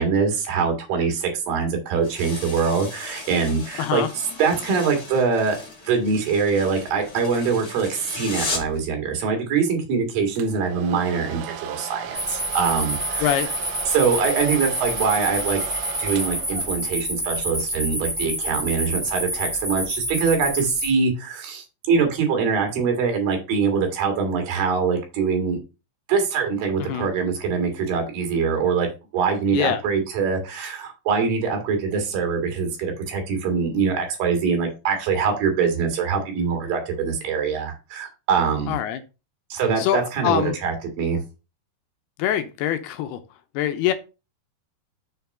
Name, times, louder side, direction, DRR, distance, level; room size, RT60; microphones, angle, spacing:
voice 1, 0.0-4.0 4.4-5.6 5.8-13.5 13.9-15.6 16.0-25.6 26.1-28.9 29.1-38.8 39.5-41.2, right 5 dB, 60° right, 4 dB, 3.5 m, -23 dB
sound 1, 2.0-8.8, left 3 dB, 30° left, 1.9 m, -36 dB
voice 2, 3.8-4.1 13.2-13.5 26.8-27.1 29.5-29.8 38.7-39.0 39.8-40.6 42.2-43.2 43.6-43.9, left 11 dB, 80° left, 9 dB, 2.6 m, -24 dB
Domestic sounds home sounds, 10.4-17.0, right 9 dB, 80° right, 2.6 m, -35 dB
sound 2, 12.1-20.9, equal, 5° right, 1.4 m, -28 dB
6.8 x 4.5 x 5.4 m, 0.30 s
omnidirectional pair, 4.7 m